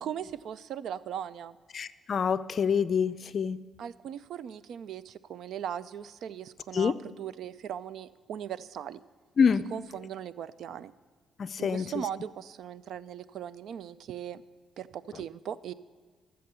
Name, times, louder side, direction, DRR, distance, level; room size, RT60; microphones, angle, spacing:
voice 1, 0.0-1.6 3.8-9.0 9.7-10.9 11.6-14.4 14.8-15.7, right 9 dB, 70° right, 17 dB, 0.4 m, -39 dB
voice 2, 1.7-3.6 6.7-7.0 9.4-9.6 11.4-12.0, left 6 dB, 50° left, 15 dB, 0.4 m, -26 dB
13.0 x 7.7 x 6.7 m, 1.5 s
cardioid pair, 90°, 0 cm